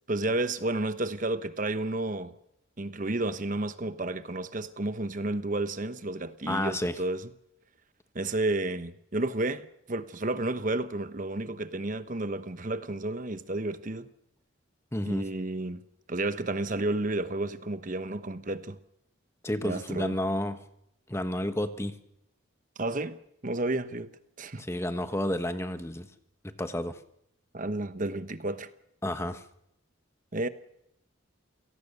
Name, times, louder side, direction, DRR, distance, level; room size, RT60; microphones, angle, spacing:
voice 1, 0.1-2.4 2.8-7.3 8.1-14.1 15.1-15.8 16.1-18.8 19.6-20.1 22.8-23.2 23.4-24.1 24.4-24.6 27.5-28.7 30.3-30.5, right 2 dB, 40° right, 1.0 m, -31 dB
voice 2, 6.5-7.0 14.9-15.3 19.4-20.6 21.1-22.0 24.6-26.1 26.6-27.0 29.0-29.4, left 1 dB, 15° left, 1.3 m, -31 dB
28.5 x 18.0 x 6.7 m
head